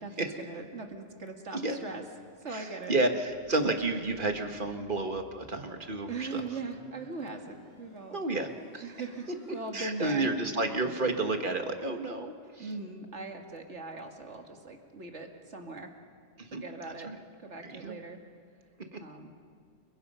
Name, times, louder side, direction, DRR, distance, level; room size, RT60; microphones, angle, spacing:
voice 1, 0.0-2.0 2.4-2.9 6.1-8.2 8.8-10.3 12.6-15.9 16.5-17.1 17.4-18.2 19.0-19.3, right 3 dB, 85° right, 3 dB, 2.4 m, -40 dB
voice 2, 2.5-6.4 8.1-8.9 9.7-12.7 16.4-17.2 17.6-18.0 18.9-19.0, right 2 dB, 45° right, 5 dB, 1.8 m, -31 dB
sound 1, 3.3-9.7, right 2 dB, 15° right, 4.7 m, -58 dB
30.0 x 22.0 x 5.6 m, 2.1 s
omnidirectional pair, 1.2 m